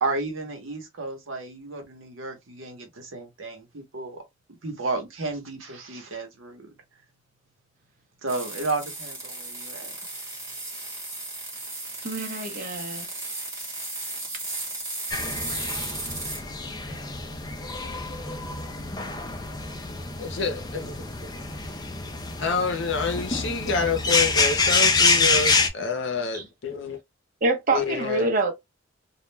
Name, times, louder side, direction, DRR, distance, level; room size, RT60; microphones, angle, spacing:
voice 1, 0.0-4.2 4.6-6.7 8.2-9.9, right 3 dB, 75° right, 0.9 m, -32 dB
sound 1, 8.3-16.4, right 2 dB, 15° right, 1.0 m, -35 dB
voice 2, 12.0-13.2 26.3-26.4 27.4-28.5, right 2 dB, 40° right, 0.8 m, -26 dB
sound 2, 15.1-25.7, left 4 dB, 20° left, 0.4 m, -26 dB
voice 3, 20.2-21.0 22.4-27.0 27.7-28.3, left 4 dB, 60° left, 0.7 m, -28 dB
2.3 x 2.1 x 3.2 m
head